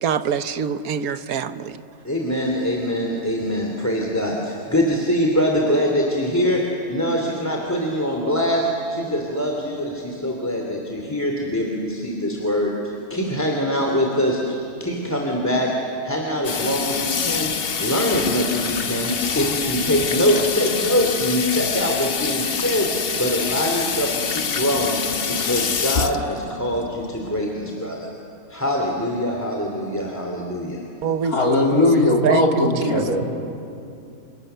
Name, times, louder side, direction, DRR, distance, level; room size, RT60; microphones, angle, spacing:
voice 1, 0.0-1.8 31.0-31.4 31.7-31.8 32.2-33.0, right 7 dB, 80° right, 11 dB, 1.4 m, -24 dB
voice 2, 2.0-6.6 6.9-17.5 17.8-25.0 25.3-28.1 28.5-30.8, equal, 10° left, 0 dB, 2.6 m, -23 dB
Water tap faucet / Sink (filling or washing), 16.4-27.3, left 6 dB, 45° left, 1.0 m, -26 dB
voice 3, 31.3-33.2, left 2 dB, 80° left, -1 dB, 3.8 m, -18 dB
29.0 x 28.0 x 6.8 m, 2.6 s
omnidirectional pair, 1.5 m